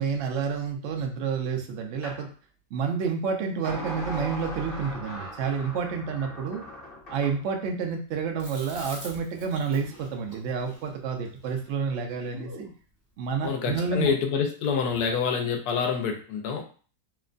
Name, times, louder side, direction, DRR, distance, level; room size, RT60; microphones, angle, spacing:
voice 1, 0.0-2.3 2.7-6.7 7.1-12.7 13.2-14.1, right 5 dB, 80° right, 3 dB, 0.6 m, -29 dB
sound 1, 2.0-2.2 3.6-7.4, left 1 dB, 45° left, 0.8 m, -38 dB
Chewing mastication, 8.4-12.8, equal, 25° right, 0.4 m, -46 dB
voice 2, 13.4-16.6, left 6 dB, 75° left, 3 dB, 1.1 m, -27 dB
3.0 x 2.1 x 2.4 m, 0.40 s
omnidirectional pair, 1.7 m